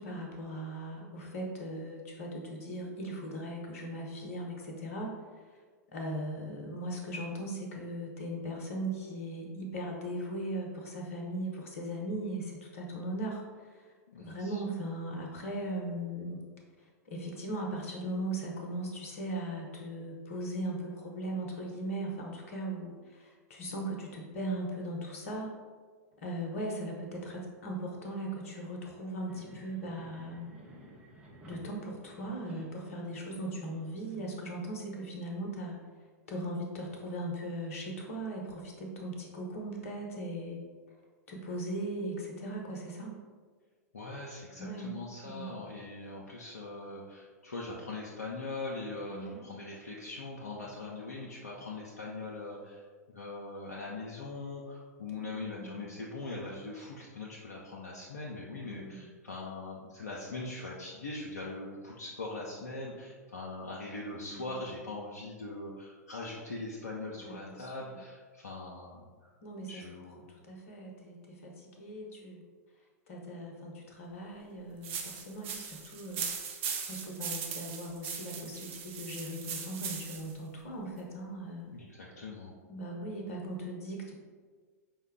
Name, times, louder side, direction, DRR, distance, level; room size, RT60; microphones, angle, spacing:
voice 1, 0.0-5.2 5.9-13.4 13.7-13.8 14.2-16.4 16.8-25.5 26.2-30.5 31.4-35.8 36.3-40.6 41.3-43.2 44.6-45.0 45.2-45.5 49.1-49.4 55.2-55.9 58.6-59.0 64.1-64.6 67.3-67.9 69.4-69.8 70.2-72.4 73.1-76.2 76.9-81.7 82.7-84.1, right 1 dB, 55° left, 0 dB, 0.9 m, -38 dB
voice 2, 14.1-14.6 43.9-69.3 69.7-70.3 81.7-82.6, left 2 dB, 75° left, -4 dB, 0.6 m, -41 dB
sound 1, 29.3-34.4, right 1 dB, 10° right, 0.7 m, -54 dB
sound 2, 74.8-80.3, right 6 dB, 45° right, 0.6 m, -39 dB
5.2 x 2.2 x 3.6 m, 1.5 s
figure-of-eight pair, 100°, 9 cm